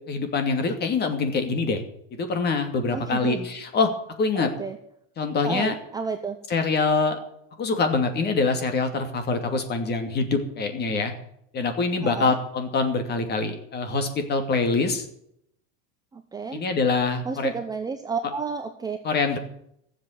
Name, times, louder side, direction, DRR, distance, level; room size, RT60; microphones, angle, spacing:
voice 1, 0.1-1.8 2.1-3.9 4.2-4.5 5.2-5.7 6.5-7.2 7.6-11.1 11.5-15.1 16.5-17.5 19.0-19.4, left 4 dB, 25° left, 7 dB, 2.6 m, -24 dB
voice 2, 2.9-3.5 4.3-4.8 5.4-6.4 12.0-12.3 16.1-16.6 17.2-19.0, right 5 dB, 10° right, 6 dB, 0.8 m, -31 dB
15.0 x 8.0 x 9.2 m, 0.72 s
supercardioid pair, 150°, 38 cm